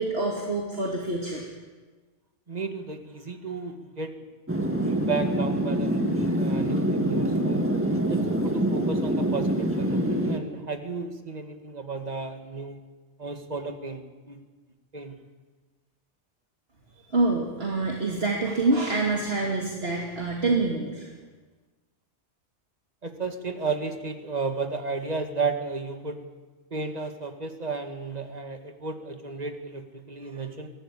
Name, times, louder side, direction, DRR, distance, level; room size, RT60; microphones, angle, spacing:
voice 1, 0.0-1.5 17.1-21.1, right 2 dB, 60° right, -1 dB, 2.9 m, -26 dB
voice 2, 2.5-4.1 4.8-7.6 8.1-12.8 13.2-14.0 14.3-14.4 14.9-15.1 23.0-26.2 26.7-30.7, right 4 dB, 35° right, 6 dB, 2.1 m, -33 dB
sound 1, 4.5-10.4, right 1 dB, 10° right, 1.9 m, -25 dB
23.5 x 17.0 x 8.5 m, 1.3 s
omnidirectional pair, 1.2 m